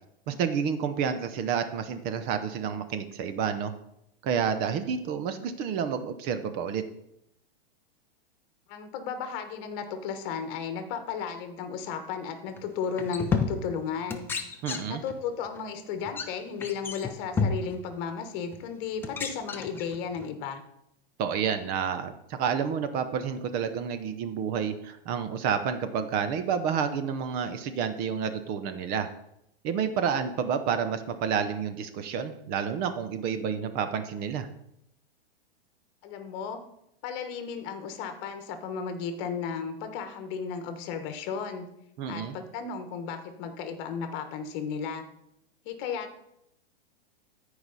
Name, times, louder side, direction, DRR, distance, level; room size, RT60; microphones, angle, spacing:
voice 1, 0.3-3.7 4.2-6.8 14.6-15.0 21.2-29.1 29.6-34.5 42.0-42.4, right 7 dB, 30° right, 10 dB, 0.7 m, -29 dB
voice 2, 8.7-14.3 14.9-20.6 36.0-36.6 37.0-41.7 42.1-45.1 45.6-46.1, left 6 dB, 40° left, 7 dB, 1.3 m, -34 dB
sound 1, 12.6-12.7 13.0-13.8 14.1-15.2 15.5-15.6 16.1-16.3 16.6-17.8 18.5-18.6 19.0-20.3, left 4 dB, 10° left, 0.4 m, -31 dB
14.0 x 4.9 x 4.1 m, 0.79 s
hypercardioid pair, 140°, 30 cm